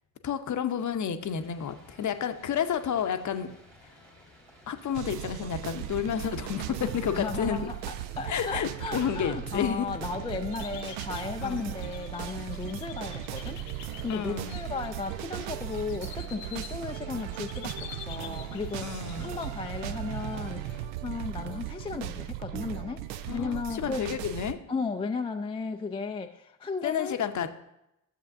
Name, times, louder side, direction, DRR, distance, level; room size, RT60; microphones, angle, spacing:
voice 1, 0.2-3.5 4.7-7.6 8.3-9.9 11.4-11.7 14.1-14.6 18.8-19.3 23.3-24.6 26.8-27.5, left 8 dB, 40° left, 9 dB, 0.8 m, -30 dB
sound 1, 1.2-20.8, equal, 85° right, 2.2 m, -55 dB
sound 2, 4.9-24.5, right 12 dB, 60° right, 0.6 m, -37 dB
voice 2, 7.1-24.1 24.7-27.2, left 4 dB, 10° left, 5 dB, 0.4 m, -35 dB
sound 3, 10.5-19.5, left 9 dB, 80° left, 0.9 m, -48 dB
13.0 x 7.4 x 2.6 m, 0.85 s
hypercardioid pair, 50°, 48 cm